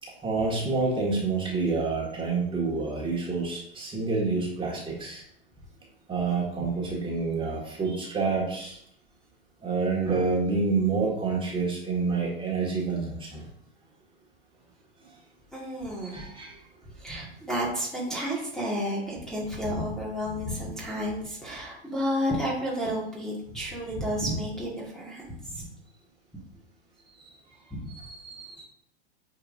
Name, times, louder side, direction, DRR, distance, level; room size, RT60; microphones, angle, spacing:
voice 1, 0.0-5.2 6.1-8.8 9.6-13.5 16.0-16.6 27.2-27.3 28.2-28.6, right 4 dB, 15° right, -3 dB, 1.9 m, -28 dB
voice 2, 15.5-16.3 17.0-25.6 27.8-27.9, equal, ahead, -6 dB, 1.9 m, -31 dB
8.7 x 4.8 x 2.6 m, 0.71 s
hypercardioid pair, 100°, 31 cm